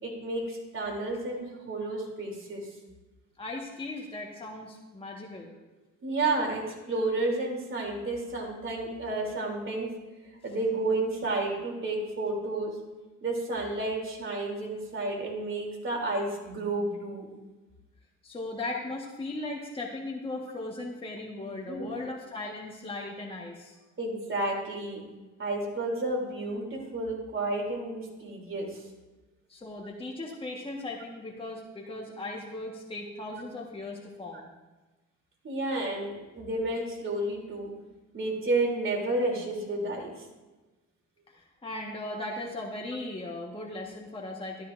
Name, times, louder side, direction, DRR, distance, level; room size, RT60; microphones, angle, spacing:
voice 1, 0.0-2.7 6.0-9.9 10.4-12.8 13.2-17.3 21.7-21.9 24.0-25.0 25.4-28.8 35.4-37.7 38.1-40.2, right 2 dB, 40° right, 0 dB, 3.2 m, -31 dB
voice 2, 3.4-5.5 18.2-23.8 29.5-34.5 41.3-44.7, left 2 dB, 20° left, -1 dB, 1.5 m, -38 dB
13.0 x 13.0 x 2.6 m, 1.2 s
cardioid pair, 90°, 30 cm